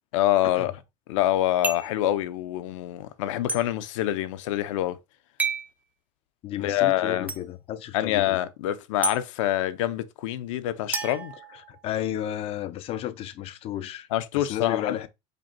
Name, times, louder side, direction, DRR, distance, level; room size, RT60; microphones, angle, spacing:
voice 1, 0.1-0.7 1.1-5.0 6.6-7.3 7.9-11.3 14.1-15.0, left 13 dB, 85° left, 0.6 m, -26 dB
sound 1, 1.6-2.0 3.5-3.6 5.4-5.7 7.3-7.4 9.0-9.2 10.9-12.0, right 3 dB, 10° right, 0.6 m, -30 dB
voice 2, 6.4-8.4 11.5-14.1 14.3-15.1, left 11 dB, 40° left, 0.5 m, -33 dB
5.1 x 4.2 x 2.2 m
supercardioid pair, 135°, 16 cm